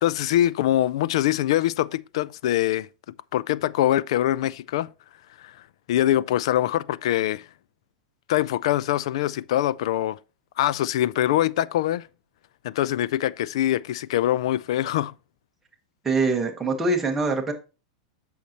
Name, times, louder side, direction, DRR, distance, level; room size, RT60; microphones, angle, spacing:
voice 1, 0.0-2.9 3.3-4.9 5.4-5.5 5.9-7.5 8.3-10.2 10.6-12.1 12.6-15.1, left 13 dB, 65° left, 0.3 m, -23 dB
voice 2, 16.0-17.5, right 3 dB, 10° right, 1.2 m, -23 dB
8.3 x 6.4 x 2.9 m
supercardioid pair, 170°, 3 cm